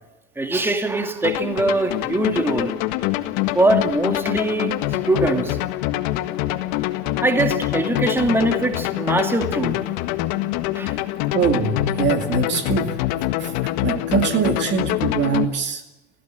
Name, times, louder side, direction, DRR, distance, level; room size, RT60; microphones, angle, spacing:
voice 1, 0.4-2.7 3.5-4.8 5.1-5.6 7.2-9.8 10.7-10.9, right 2 dB, 5° right, 2.4 m, -22 dB
sound 1, 1.2-15.4, left 15 dB, 55° left, 1.7 m, -25 dB
voice 2, 11.3-13.0 13.4-15.8, right 6 dB, 35° right, 2.4 m, -23 dB
27.5 x 16.0 x 9.1 m
supercardioid pair, 115°, 33 cm